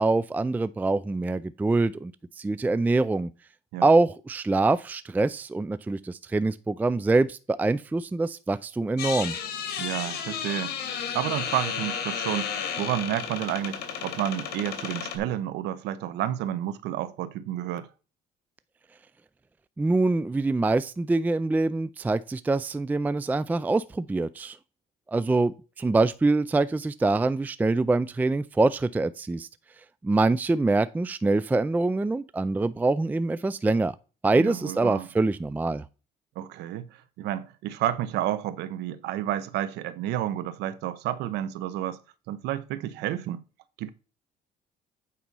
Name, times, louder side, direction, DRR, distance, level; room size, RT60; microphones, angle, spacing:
voice 1, 0.0-2.1 2.4-3.3 3.8-9.4 19.8-24.6 25.1-29.5 30.0-33.9 34.2-35.8, right 3 dB, 10° right, 0.4 m, -24 dB
sound 1, 9.0-15.2, left 7 dB, 70° left, 2.4 m, -33 dB
voice 2, 9.8-10.7 11.1-17.9 34.3-35.1 36.4-42.0 42.3-43.4 43.8-43.9, right 12 dB, 85° right, 0.9 m, -30 dB
8.7 x 4.2 x 5.4 m
cardioid pair, 110°, 17 cm